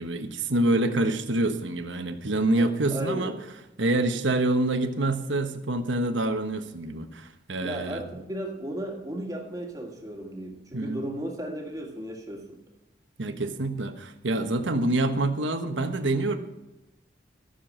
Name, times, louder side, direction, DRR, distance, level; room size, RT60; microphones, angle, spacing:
voice 1, 0.0-3.3 3.8-8.0 10.7-11.0 13.2-16.4, right 2 dB, 90° right, 7 dB, 1.2 m, -26 dB
voice 2, 2.6-3.3 7.6-12.6, right 1 dB, 20° right, 1 dB, 1.8 m, -35 dB
14.0 x 6.9 x 7.5 m, 0.97 s
head